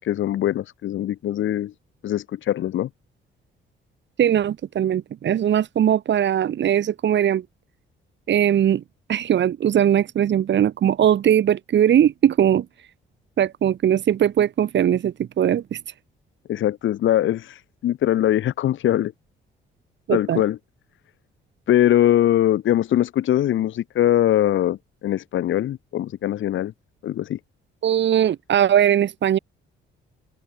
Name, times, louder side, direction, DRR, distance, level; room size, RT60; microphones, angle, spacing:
voice 1, 0.0-1.7 2.0-2.9 16.5-19.1 20.1-20.6 21.7-24.8 25.0-26.7 27.0-27.4, left 12 dB, 75° left, 5.8 m, -21 dB
voice 2, 4.2-7.4 8.3-8.8 9.1-12.7 13.4-15.8 20.1-20.4 27.8-29.4, right 10 dB, 65° right, 4.3 m, -20 dB
cardioid pair, 90°, 20 cm